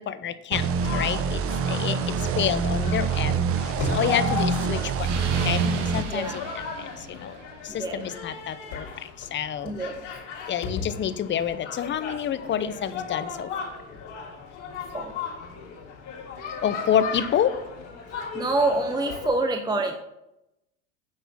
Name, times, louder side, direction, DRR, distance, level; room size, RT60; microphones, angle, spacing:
voice 1, 0.0-6.4 6.8-7.3 7.6-9.7 10.5-13.5 16.6-17.6, left 9 dB, 30° left, 13 dB, 0.7 m, -28 dB
sound 1, 0.5-6.0, right 5 dB, 40° right, 0.9 m, -25 dB
sound 2, 0.8-19.3, left 5 dB, 80° left, 3.4 m, -36 dB
voice 2, 1.8-2.1 4.1-4.3 6.1-6.4 7.3-8.0 9.6-10.1 14.9-15.1 18.3-19.9, right 2 dB, 10° right, 5 dB, 0.8 m, -27 dB
Explosion, 3.8-7.7, right 5 dB, 85° right, 1.7 m, -36 dB
9.5 x 4.1 x 7.0 m, 0.88 s
supercardioid pair, 95°, 35 cm